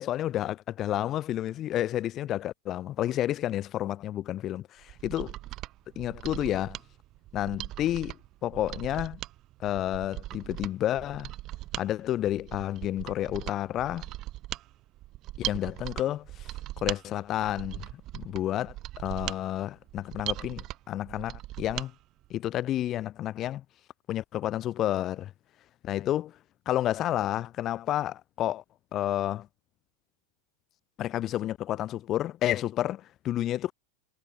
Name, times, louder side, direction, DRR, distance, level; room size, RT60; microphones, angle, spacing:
voice 1, 0.0-5.3 5.9-6.8 7.3-8.2 8.4-9.2 9.6-11.3 11.8-14.1 15.5-16.5 16.8-17.8 18.1-21.9 22.3-23.6 24.1-25.3 25.8-26.4 26.6-28.6 28.9-29.5 31.0-33.7, left 12 dB, 30° left, 4.9 m, -30 dB
Mechanisms, 4.8-21.9 22.2-22.3, right 16 dB, 35° right, 5.9 m, -39 dB
figure-of-eight pair, 90°, 0 cm